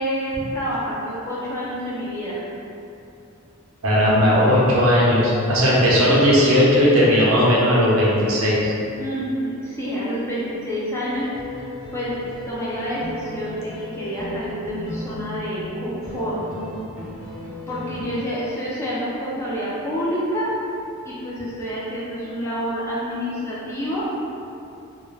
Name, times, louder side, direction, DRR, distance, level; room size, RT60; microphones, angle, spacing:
voice 1, 0.0-2.4 9.0-11.7 11.9-16.4 17.7-20.5 21.0-24.1, equal, 10° left, -8 dB, 0.3 m, -28 dB
voice 2, 3.8-8.8, equal, 70° right, -6 dB, 0.6 m, -17 dB
sound 1, 11.1-18.1, left 1 dB, 45° left, 0.9 m, -36 dB
2.2 x 2.2 x 3.1 m, 2.7 s
head